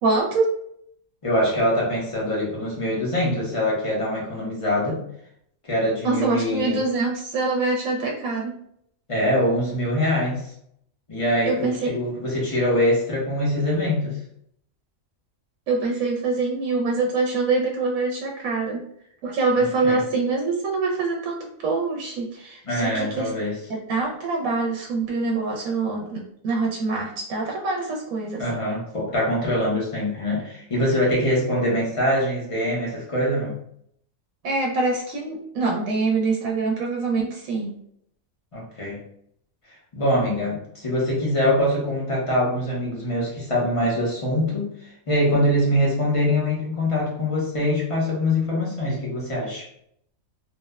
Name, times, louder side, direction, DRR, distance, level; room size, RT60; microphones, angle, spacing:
voice 1, 0.0-0.5 6.0-8.5 11.4-11.9 15.7-18.8 19.2-23.3 23.7-28.4 34.4-37.7, right 3 dB, 80° right, -1 dB, 1.0 m, -24 dB
voice 2, 1.2-5.0 5.6-6.8 9.1-10.5 11.1-14.2 19.6-20.0 22.6-23.6 28.4-33.5 38.5-39.0 39.9-49.7, left 1 dB, 30° left, -5 dB, 0.6 m, -23 dB
3.0 x 2.0 x 2.2 m, 0.70 s
omnidirectional pair, 1.4 m